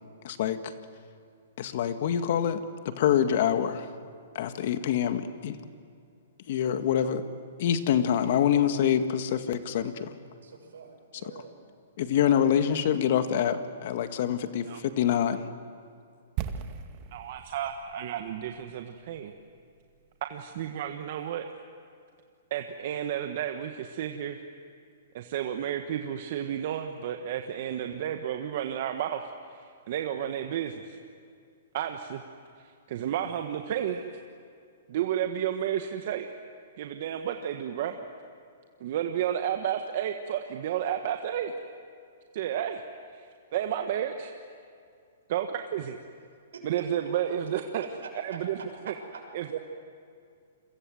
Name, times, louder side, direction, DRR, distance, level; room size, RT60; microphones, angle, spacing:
voice 1, 0.2-0.7 1.6-2.6 2.9-3.9 4.4-5.6 6.5-7.2 7.6-10.1 12.0-15.5, left 9 dB, 55° left, 9 dB, 1.9 m, -26 dB
voice 2, 10.3-11.6 46.5-46.6 48.0-48.4 48.9-49.2, right 5 dB, 80° right, 4 dB, 6.7 m, -45 dB
sound 1, 16.4-20.3 20.6-20.7, right 9 dB, 35° right, 1.8 m, -39 dB
voice 3, 17.1-19.3 20.3-21.4 22.5-24.4 25.1-31.0 31.7-32.2 32.9-34.1 34.9-36.3 36.8-38.0 38.8-41.5 42.3-42.8 43.1-43.2 43.5-44.3 45.3-46.0 46.6-47.8 48.1-48.6 48.8-48.9 49.3-49.6, right 10 dB, 55° right, 5 dB, 1.5 m, -31 dB
29.5 x 23.5 x 7.9 m, 2.3 s
hypercardioid pair, 140°, 0 cm